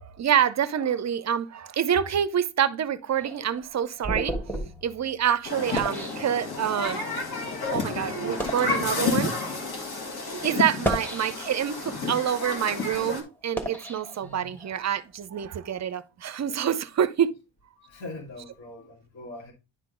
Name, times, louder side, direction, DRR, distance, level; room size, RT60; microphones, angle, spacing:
voice 1, 0.0-4.4 4.8-7.0 7.7-9.3 10.4-17.3, right 9 dB, 35° right, 0.5 m, -27 dB
sound 1, 3.2-6.9 7.6-7.7 8.2-8.8 9.6-9.7 10.6-11.7 12.3-14.8, right 1 dB, 5° left, 1.3 m, -34 dB
Human group actions, 5.4-13.2, left 3 dB, 50° left, 2.2 m, -31 dB
voice 2, 10.6-11.0 14.2-14.6 17.8-19.5, left 2 dB, 70° left, 2.4 m, -42 dB
10.5 x 3.7 x 3.7 m
cardioid pair, 150°, 48 cm